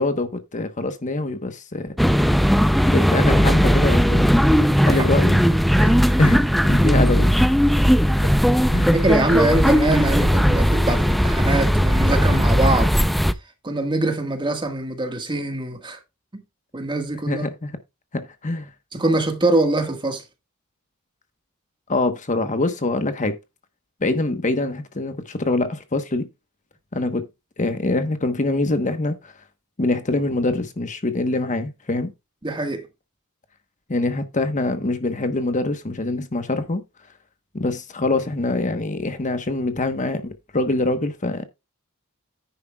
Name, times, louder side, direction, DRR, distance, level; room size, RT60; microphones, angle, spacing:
voice 1, 0.0-2.0 2.9-4.3 4.8-5.4 6.2-7.3 8.7-9.0 17.3-17.8 18.1-18.7 21.9-23.4 24.0-26.3 26.9-27.3 27.6-29.3 29.8-32.1 33.9-36.8 37.5-41.4, left 2 dB, 35° left, 1.1 m, -24 dB
sound 1, 2.0-13.3, equal, ahead, 0.5 m, -17 dB
voice 2, 2.0-2.4 4.8-5.2 5.8-6.0 8.9-13.0 13.6-16.0 16.3-16.4 16.7-17.5 18.9-20.2 32.4-32.8, right 2 dB, 20° right, 1.6 m, -23 dB
10.0 x 9.4 x 2.3 m
head